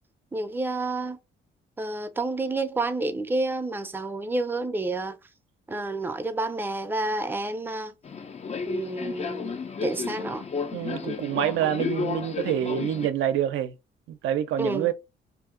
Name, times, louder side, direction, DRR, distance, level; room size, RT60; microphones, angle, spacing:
voice 1, 0.3-1.2 1.8-5.2 5.7-7.9 8.7-10.4 11.0-11.1 14.6-14.9, right 2 dB, 10° right, 0.5 m, -29 dB
Subway metro underground, 8.0-13.1, left 5 dB, 35° left, 0.5 m, -33 dB
voice 2, 10.7-13.7 14.1-14.9, right 10 dB, 80° right, 0.5 m, -26 dB
2.7 x 2.6 x 3.7 m
cardioid pair, 90°, 20 cm